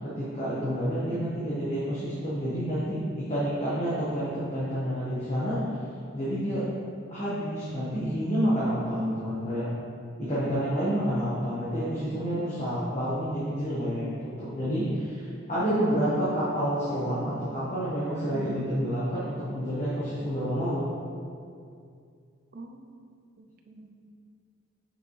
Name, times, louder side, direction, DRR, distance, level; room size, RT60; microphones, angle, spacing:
voice 1, 0.0-5.6 6.1-6.7 7.1-9.7 10.2-20.8, equal, 35° left, -10 dB, 1.3 m, -29 dB
voice 2, 1.0-1.3 11.5-12.6 18.3-18.7 22.5-23.0 23.4-24.1, right 2 dB, 45° right, 3 dB, 0.6 m, -43 dB
6.8 x 6.4 x 3.3 m, 2.3 s
head